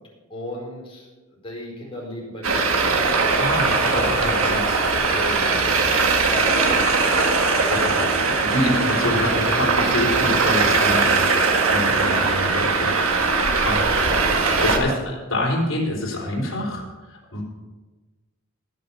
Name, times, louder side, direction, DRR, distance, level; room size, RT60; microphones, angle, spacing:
voice 1, 0.3-3.1 3.8-4.6 5.1-7.5, left 1 dB, 25° left, -3 dB, 4.6 m, -36 dB
Traffic noise roadway noise, 2.4-14.8, right 4 dB, 85° right, 1.6 m, -20 dB
voice 2, 3.4-5.2 7.5-16.8 17.1-17.4, left 1 dB, 65° left, -2 dB, 4.0 m, -27 dB
19.5 x 6.6 x 5.6 m, 1.2 s
head